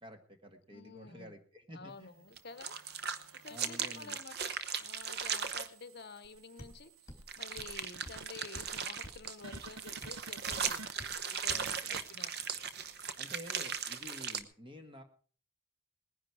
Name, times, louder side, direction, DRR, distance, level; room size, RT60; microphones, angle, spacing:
voice 1, 0.0-2.3 3.5-4.2 11.5-12.0 13.2-15.0, equal, 25° right, 6 dB, 1.7 m, -51 dB
voice 2, 0.7-1.3 1.7-2.7 3.4-10.9 11.3-12.3, left 4 dB, 50° left, 13 dB, 0.8 m, -50 dB
sound 1, 2.2-4.2 4.7-12.5 12.8-12.9, right 5 dB, 85° right, 0.8 m, -53 dB
sound 2, 2.4-5.7 7.3-14.4, right 7 dB, 50° right, 0.9 m, -38 dB
Indicator Light, 6.2-6.3 6.6-6.8 7.1-7.2 7.6-7.8 8.1-8.2 8.5-8.7 9.0-9.2 9.5-9.6 10.0-10.1 10.5-10.7 11.0-11.2 11.5-11.7, left 1 dB, 15° left, 3.1 m, -49 dB
19.0 x 10.5 x 4.8 m, 0.43 s
head